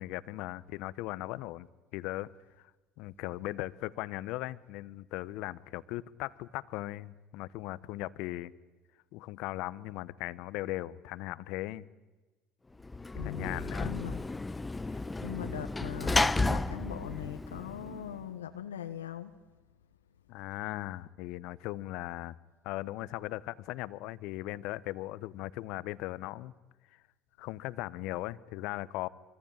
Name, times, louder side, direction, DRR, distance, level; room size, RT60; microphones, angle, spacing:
voice 1, 0.0-2.3 2.6-2.7 3.0-8.5 9.1-11.9 13.2-13.9 20.3-22.3 22.6-26.5 27.4-29.1, left 17 dB, 65° left, 1.0 m, -38 dB
Sliding door / Slam, 12.8-18.2, left 2 dB, 15° left, 0.9 m, -32 dB
voice 2, 13.1-14.2 14.9-19.3, left 9 dB, 85° left, 1.2 m, -41 dB
25.0 x 25.0 x 8.9 m
hypercardioid pair, 65°, 0 cm